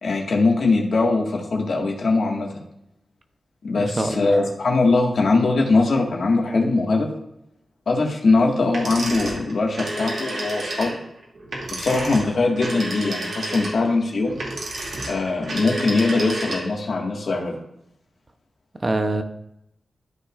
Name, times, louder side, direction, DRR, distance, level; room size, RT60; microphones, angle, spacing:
voice 1, 0.0-2.6 3.6-7.1 7.9-11.0 11.7-14.4 15.1-17.6, left 3 dB, 65° left, 0 dB, 1.7 m, -21 dB
voice 2, 3.8-4.4 18.8-19.2, right 2 dB, 30° right, 7 dB, 0.7 m, -24 dB
sound 1, 8.7-16.9, right 1 dB, 75° right, 2.4 m, -30 dB
13.0 x 5.8 x 2.5 m, 0.81 s
wide cardioid pair, 130°, 0 cm